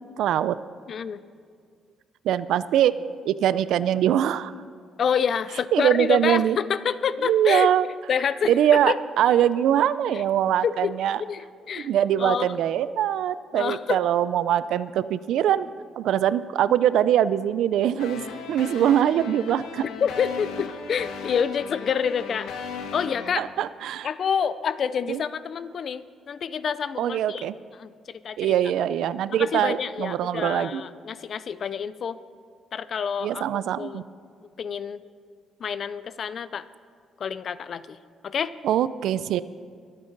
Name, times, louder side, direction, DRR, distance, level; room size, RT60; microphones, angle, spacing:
voice 1, 0.2-0.6 2.2-2.9 3.2-4.5 5.7-6.6 7.2-7.9 8.5-11.2 11.8-15.7 16.0-18.2 18.5-19.8 23.4-24.1 25.1-25.2 27.0-27.6 28.4-30.8 33.2-34.0 38.6-39.4, right 10 dB, 75° right, 16 dB, 0.4 m, -22 dB
voice 2, 0.9-1.2 5.0-7.7 8.1-8.5 8.9-9.0 10.1-10.2 10.6-10.9 11.2-11.9 12.2-12.5 13.5-14.0 20.0-22.5 22.9-23.4 24.0-27.4 27.8-28.5 29.4-32.2 32.7-34.0 34.6-35.0 35.6-36.6 37.2-38.0 38.2-38.5, left 7 dB, 45° left, 15 dB, 0.4 m, -28 dB
sound 1, 18.0-23.3, left 5 dB, 90° left, 1.2 m, -36 dB
23.0 x 8.9 x 3.9 m, 2.1 s
cardioid pair, 150°, 0 cm